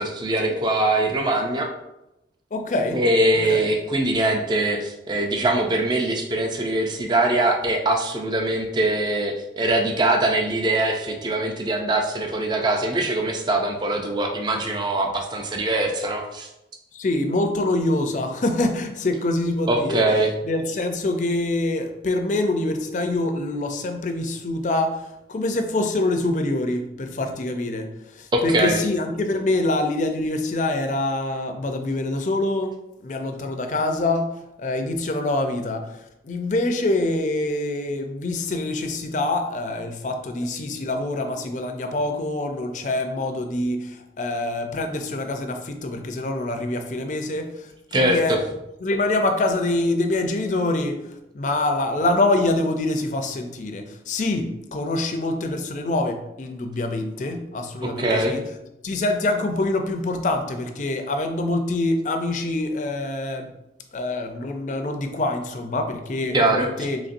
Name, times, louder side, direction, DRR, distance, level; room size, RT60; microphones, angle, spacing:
voice 1, 0.0-1.7 2.9-16.5 19.7-20.3 28.3-28.8 47.9-48.4 57.8-58.4 66.3-66.9, right 1 dB, 25° right, 3 dB, 0.3 m, -22 dB
voice 2, 2.5-3.0 3.5-3.7 16.9-20.0 20.4-27.9 28.2-32.8 33.0-34.3 34.6-35.9 36.2-47.7 47.9-48.4 48.8-58.4 58.8-63.5 63.9-67.0, left 2 dB, 40° left, 5 dB, 0.4 m, -25 dB
4.0 x 3.1 x 2.5 m, 0.90 s
head